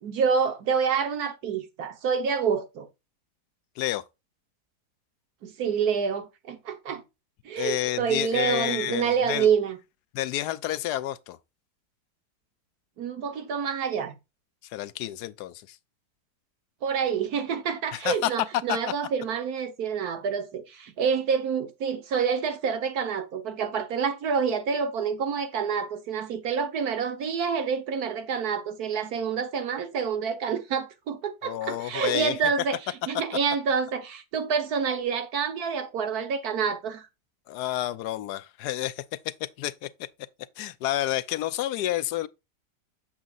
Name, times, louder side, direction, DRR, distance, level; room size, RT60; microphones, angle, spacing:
voice 1, 0.0-2.9 5.4-7.0 7.4-9.8 13.0-14.1 16.8-32.8 33.1-37.1, right 6 dB, 70° right, 1.6 m, -27 dB
voice 2, 7.6-9.5 10.1-11.4 14.7-15.8 17.9-18.3 18.7-18.8 31.4-32.5 37.5-40.1 40.6-42.3, left 14 dB, 80° left, 1.1 m, -30 dB
7.3 x 6.6 x 2.4 m
omnidirectional pair, 1.7 m